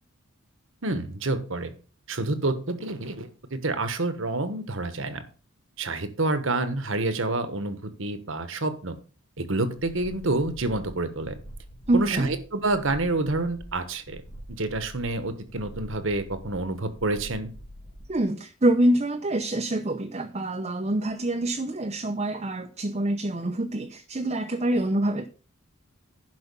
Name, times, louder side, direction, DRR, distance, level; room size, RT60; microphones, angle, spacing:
voice 1, 0.8-1.7 2.1-5.2 5.8-8.9 9.4-11.4 11.9-14.2 14.6-17.5, right 2 dB, 60° right, 1.3 m, -28 dB
sound 1, 9.8-18.2, equal, 80° left, 3.2 m, -45 dB
voice 2, 11.9-12.3 18.1-25.3, right 1 dB, 30° right, 0.7 m, -26 dB
11.0 x 5.7 x 5.5 m
head